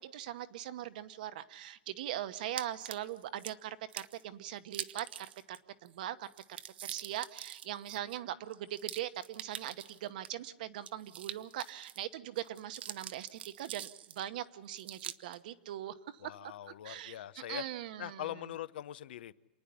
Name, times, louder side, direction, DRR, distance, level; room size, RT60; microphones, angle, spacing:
voice 1, 0.0-16.5 16.8-17.2 17.5-18.4, right 12 dB, 55° right, 1.0 m, -41 dB
sound 1, 2.6-3.5 3.9-4.2 4.7-5.6 5.9-6.0 6.2-10.3 10.8-12.0 12.4-14.3 14.8-15.4, right 10 dB, 80° right, 0.8 m, -44 dB
voice 2, 16.2-17.6 18.0-19.3, left 12 dB, 70° left, 0.6 m, -42 dB
28.0 x 10.0 x 10.0 m
supercardioid pair, 165°, 6 cm